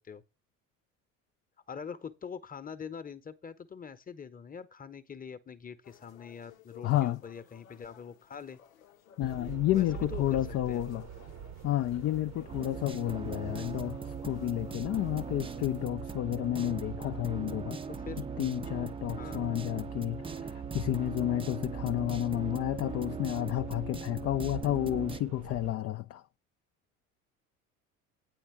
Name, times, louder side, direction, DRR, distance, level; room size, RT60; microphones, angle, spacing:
voice 1, 1.7-8.6 9.7-10.4 10.7-10.8 15.3-15.4 17.9-18.2 19.2-19.4 24.2-24.4, left 6 dB, 20° left, 1.0 m, -44 dB
sound 1, 5.8-15.9, left 9 dB, 85° left, 0.8 m, -56 dB
voice 2, 6.8-7.2 9.2-11.1 11.6-17.8 18.2-26.2, left 14 dB, 40° left, 0.5 m, -31 dB
sound 2, 9.2-25.8, right 9 dB, 40° right, 0.8 m, -47 dB
sound 3, 12.5-25.2, right 5 dB, 15° right, 0.5 m, -39 dB
8.9 x 4.6 x 5.9 m
hypercardioid pair, 60°, 40 cm